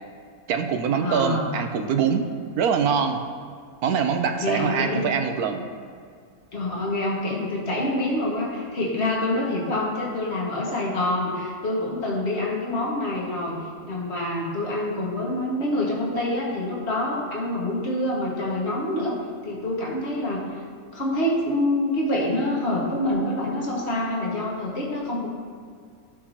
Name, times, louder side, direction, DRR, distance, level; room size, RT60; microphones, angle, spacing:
voice 1, 0.5-2.3 2.6-3.2 3.8-5.6, right 6 dB, 80° right, 6 dB, 1.2 m, -24 dB
voice 2, 1.0-1.5 4.4-5.1 6.5-13.6 13.9-19.2 19.4-20.6 20.9-25.3, left 1 dB, 45° left, -4 dB, 2.0 m, -26 dB
15.5 x 6.3 x 2.9 m, 2.2 s
omnidirectional pair, 1.6 m